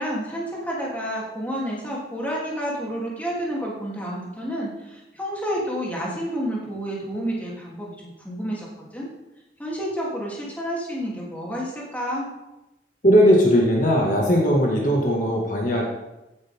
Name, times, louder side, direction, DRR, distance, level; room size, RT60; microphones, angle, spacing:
voice 1, 0.0-7.9 8.2-8.7 8.9-9.1 9.6-12.3, equal, 10° left, -5 dB, 3.3 m, -29 dB
voice 2, 13.0-15.8, equal, 45° left, -2 dB, 2.1 m, -18 dB
15.5 x 11.0 x 3.8 m, 0.97 s
head